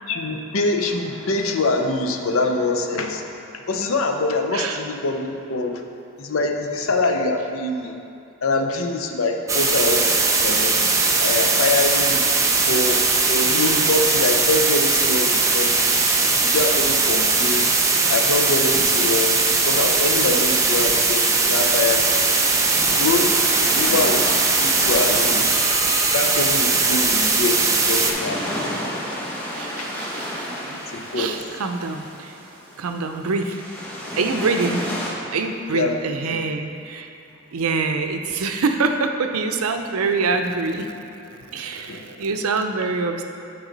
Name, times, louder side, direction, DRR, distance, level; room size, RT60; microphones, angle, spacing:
voice 1, 0.1-5.8 6.2-8.0 8.4-12.2 12.7-13.0 13.3-16.0 16.4-17.7 18.1-22.1 23.0-23.3 23.7-24.3 24.6-25.7 26.1-28.4 29.8-29.9 30.5-31.3 35.7-36.0 36.3-36.4 41.9-42.2, left 3 dB, 70° left, 4 dB, 0.6 m, -24 dB
sound 1, 9.5-28.1, right 4 dB, 15° right, 0.4 m, -19 dB
voice 2, 13.6-13.9 16.3-16.4 29.5-30.5 31.1-32.4 32.8-33.6 34.1-34.8 35.3-37.1 37.5-40.9 41.5-43.2, right 4 dB, 85° right, 6 dB, 0.5 m, -25 dB
sound 2, 16.7-17.1 18.3-18.4 18.7-19.5 20.8-21.6 22.3-23.2 24.8-25.5, equal, 40° left, 1.3 m, -40 dB
sound 3, 22.5-35.1, equal, 5° left, 0.9 m, -32 dB
9.0 x 4.8 x 3.9 m, 2.7 s
head